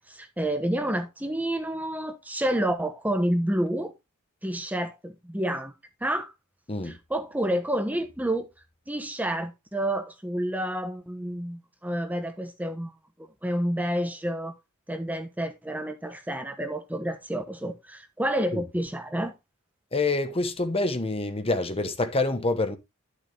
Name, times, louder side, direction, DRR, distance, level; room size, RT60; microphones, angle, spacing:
voice 1, 0.0-3.9 4.4-5.7 6.0-6.3 6.8-8.5 8.9-12.9 13.2-14.5 14.9-19.3, right 1 dB, 5° right, 1.1 m, -29 dB
voice 2, 19.9-22.8, left 2 dB, 25° left, 1.1 m, -26 dB
11.0 x 6.6 x 3.4 m
head